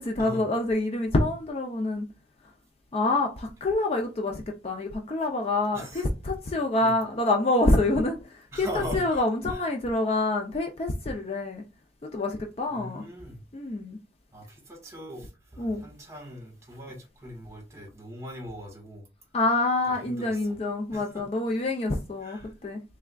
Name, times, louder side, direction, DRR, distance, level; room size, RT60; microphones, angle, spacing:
voice 1, 0.0-2.1 2.9-11.6 12.0-13.0 13.5-14.0 15.6-15.8 19.3-22.8, left 2 dB, 35° left, 0.4 m, -27 dB
voice 2, 5.7-6.0 6.8-6.9 8.5-9.2 9.5-9.6 12.7-13.4 14.3-19.0 19.8-20.6 20.9-21.2 22.2-22.5, equal, 15° right, 1.4 m, -40 dB
3.5 x 3.3 x 2.2 m
head